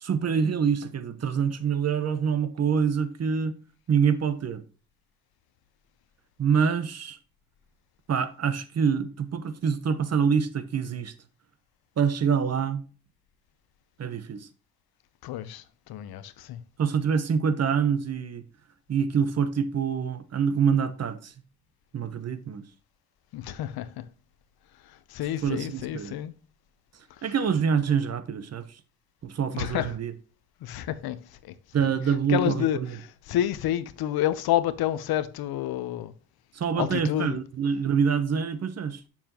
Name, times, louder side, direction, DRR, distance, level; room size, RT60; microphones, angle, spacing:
voice 1, 0.0-3.6 3.9-4.6 6.4-7.2 8.1-11.1 12.0-12.8 14.0-14.5 16.8-18.4 18.9-21.3 21.9-22.6 25.4-26.2 27.2-28.6 29.2-30.1 31.7-33.0 36.5-39.0, right 6 dB, 45° right, 1.1 m, -26 dB
voice 2, 15.2-15.6 15.9-16.6 23.3-24.0 25.1-26.3 29.5-29.9 30.6-31.2 31.8-31.9 32.3-32.8 33.3-36.1 36.8-37.4, left 12 dB, 75° left, 0.8 m, -29 dB
7.3 x 7.2 x 2.9 m
cardioid pair, 90°, 37 cm